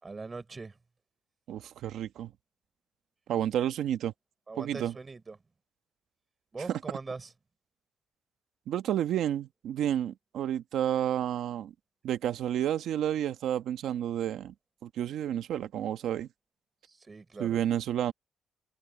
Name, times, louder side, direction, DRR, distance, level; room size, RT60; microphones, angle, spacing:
voice 1, 0.0-0.8 4.5-5.4 6.5-7.3 16.9-17.6, right 3 dB, 20° right, 4.8 m, -41 dB
voice 2, 1.5-2.3 3.3-4.1 4.6-4.9 8.7-11.7 12.0-14.5 14.8-16.3 17.4-18.1, right 10 dB, 80° right, 1.2 m, -30 dB
cardioid pair, 175°, 0 cm